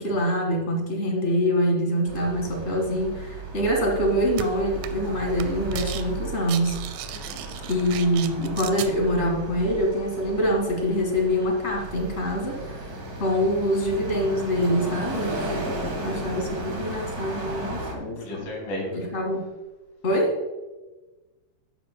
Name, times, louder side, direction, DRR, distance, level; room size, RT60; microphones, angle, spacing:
voice 1, 0.0-6.8 7.7-12.8 13.2-15.3 16.0-18.5 18.9-19.5 20.0-20.4, equal, 25° left, 1 dB, 1.5 m, -25 dB
sound 1, 2.1-17.9, right 2 dB, 40° right, 1.5 m, -35 dB
sound 2, 4.4-4.5 4.8-5.1 5.4-6.0 6.3-8.9, right 11 dB, 85° right, 2.3 m, -35 dB
voice 2, 7.1-7.4 15.5-15.9 17.3-17.4 18.2-19.0, left 1 dB, 85° left, -1 dB, 4.6 m, -35 dB
12.0 x 9.5 x 2.3 m, 1.1 s
omnidirectional pair, 4.0 m